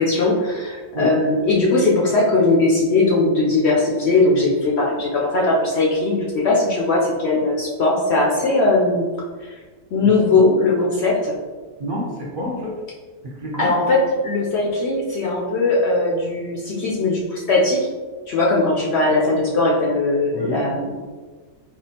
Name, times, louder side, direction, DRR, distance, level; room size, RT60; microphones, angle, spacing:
voice 1, 0.0-9.1 9.4-9.5 9.9-11.3 13.6-17.8 18.3-21.0, left 2 dB, 60° left, -3 dB, 0.8 m, -19 dB
voice 2, 11.8-12.7 13.2-13.7 20.3-20.6, equal, 45° right, -5 dB, 0.9 m, -28 dB
4.3 x 2.4 x 2.8 m, 1.4 s
omnidirectional pair, 1.4 m